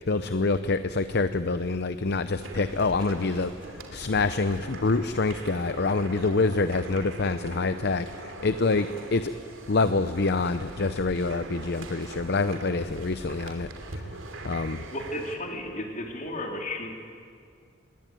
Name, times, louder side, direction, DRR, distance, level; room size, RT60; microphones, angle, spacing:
voice 1, 0.1-3.5 3.9-9.3 9.7-14.0 14.4-14.8, left 3 dB, 55° left, 11 dB, 0.7 m, -26 dB
sound 1, 2.4-15.4, right 2 dB, 75° right, 3.0 m, -41 dB
voice 2, 14.9-16.9, left 1 dB, 40° left, 2 dB, 3.6 m, -34 dB
26.5 x 21.0 x 9.3 m, 2.2 s
head